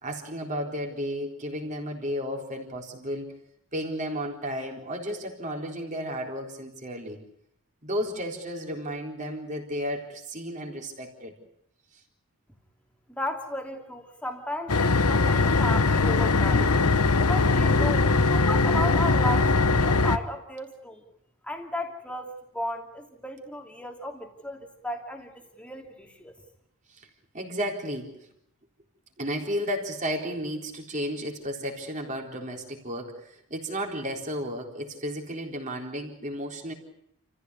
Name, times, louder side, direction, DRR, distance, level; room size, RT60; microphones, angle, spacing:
voice 1, 0.0-3.3 3.7-7.2 7.8-11.3 11.9-12.0 16.6-16.7 26.9-27.1 27.3-28.2 29.2-36.7, equal, 35° right, 2 dB, 3.9 m, -33 dB
voice 2, 13.1-16.7 17.2-21.0 21.4-26.3, left 1 dB, 5° left, 3 dB, 2.8 m, -35 dB
sound 1, 14.7-20.2, left 3 dB, 85° left, 1.1 m, -21 dB
29.0 x 15.0 x 9.7 m, 0.75 s
head